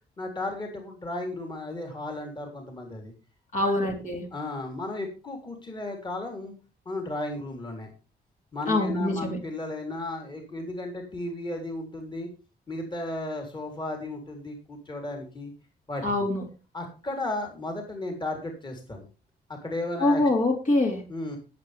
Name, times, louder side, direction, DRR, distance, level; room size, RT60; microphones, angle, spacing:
voice 1, 0.2-3.1 3.6-3.7 4.3-6.5 6.9-7.9 8.5-12.3 12.7-15.5 15.9-16.0 16.7-19.1 19.6-20.2 21.1-21.4, left 2 dB, 25° left, 2 dB, 3.6 m, -34 dB
voice 2, 3.5-4.3 8.7-9.4 16.0-16.4 20.0-21.0, left 2 dB, 50° left, 1 dB, 4.1 m, -24 dB
21.5 x 7.7 x 3.5 m, 0.33 s
cardioid pair, 115°, 17 cm